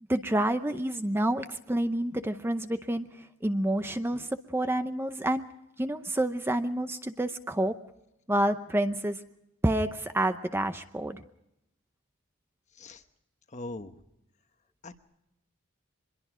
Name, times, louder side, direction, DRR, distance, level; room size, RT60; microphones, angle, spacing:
voice 1, 0.1-5.4 5.8-7.7 8.3-9.2 9.6-11.2, right 1 dB, 10° right, 8 dB, 0.7 m, -28 dB
voice 2, 13.5-14.0 14.8-15.0, left 2 dB, 35° left, 8 dB, 1.2 m, -41 dB
24.5 x 21.5 x 5.0 m, 0.85 s
head